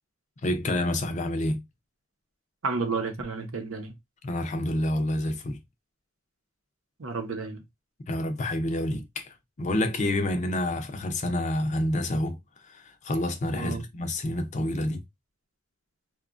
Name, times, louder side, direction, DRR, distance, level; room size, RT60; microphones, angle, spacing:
voice 1, 0.4-1.6 4.2-5.6 8.0-12.4 12.7-15.0, left 1 dB, 35° left, 0.5 m, -28 dB
voice 2, 2.6-4.0 7.0-7.6 13.6-13.8, right 4 dB, 80° right, 0.7 m, -31 dB
2.8 x 2.2 x 2.4 m
head